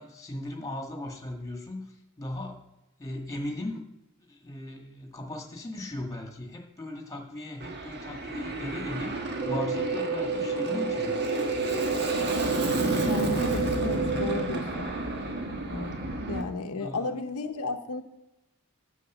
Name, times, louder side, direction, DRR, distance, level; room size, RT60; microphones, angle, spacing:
voice 1, 0.0-2.6 3.0-3.8 4.2-11.2 16.7-17.2, left 1 dB, 15° left, 2 dB, 1.8 m, -38 dB
Aircraft, 7.6-16.4, right 2 dB, 50° right, 1.5 m, -31 dB
sound 1, 9.4-14.4, right 4 dB, 35° right, 4.2 m, -30 dB
voice 2, 13.0-14.9 15.7-16.0 16.3-18.0, left 3 dB, 80° left, 6 dB, 0.8 m, -34 dB
9.9 x 7.4 x 6.2 m, 0.89 s
head